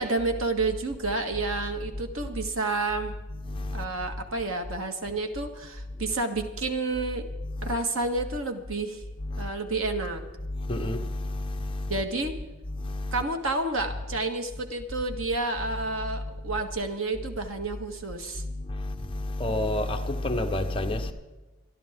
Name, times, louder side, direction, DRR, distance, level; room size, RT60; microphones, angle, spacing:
voice 1, 0.0-3.1 3.7-7.3 7.6-9.0 9.4-10.2 11.9-12.4 13.1-18.4, right 3 dB, 85° right, 1.8 m, -30 dB
voice 2, 3.3-4.2 5.9-6.1 7.4-7.8 9.2-9.5 10.4-12.0 12.7-13.2 15.8-16.6 18.4-21.1, left 1 dB, 25° left, 1.1 m, -31 dB
25.5 x 11.5 x 3.7 m
head